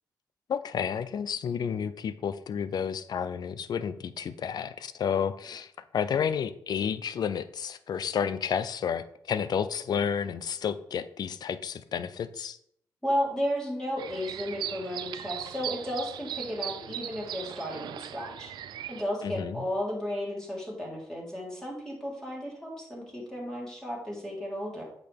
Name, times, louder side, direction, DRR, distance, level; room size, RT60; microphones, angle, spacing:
voice 1, 0.5-12.6 19.2-19.7, left 7 dB, 65° left, 14 dB, 0.5 m, -31 dB
voice 2, 13.0-18.5 18.9-24.8, equal, 10° left, -4 dB, 3.5 m, -33 dB
sound 1, 14.0-19.0, right 10 dB, 85° right, 0.4 m, -38 dB
8.4 x 6.2 x 3.5 m, 0.71 s
cardioid pair, 75°, 7 cm